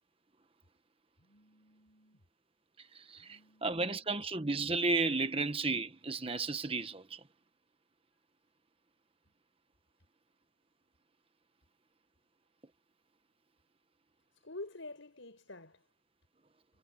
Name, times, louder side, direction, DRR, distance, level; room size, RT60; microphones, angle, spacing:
voice 1, 1.2-2.2 3.2-4.2 14.3-15.9, left 2 dB, 75° left, 5.5 m, -49 dB
voice 2, 2.9-7.2, right 3 dB, 30° right, 1.3 m, -33 dB
head